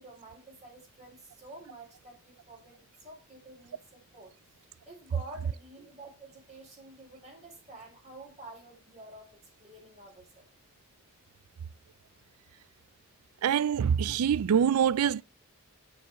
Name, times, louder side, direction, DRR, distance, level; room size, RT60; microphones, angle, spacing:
voice 1, 0.0-4.3 4.9-10.4, right 2 dB, 30° right, 4.0 m, -49 dB
voice 2, 13.4-15.2, right 8 dB, 90° right, 0.4 m, -25 dB
8.2 x 7.7 x 4.7 m
head